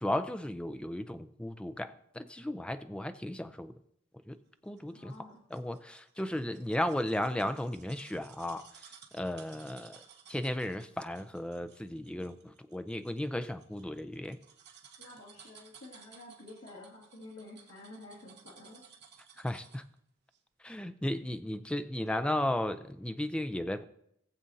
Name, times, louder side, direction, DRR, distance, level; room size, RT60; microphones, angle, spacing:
voice 1, 0.0-3.7 4.3-4.4 4.6-5.1 5.5-8.7 9.1-10.0 10.3-14.4 19.4-19.8 20.6-23.8, left 1 dB, 5° left, 11 dB, 0.4 m, -35 dB
sound 1, 4.8-19.9 20.3-20.4, right 7 dB, 55° right, 1.2 m, -57 dB
voice 2, 4.9-5.4 15.0-18.8, left 2 dB, 90° left, -4 dB, 2.1 m, -50 dB
19.0 x 7.5 x 2.7 m, 0.73 s
head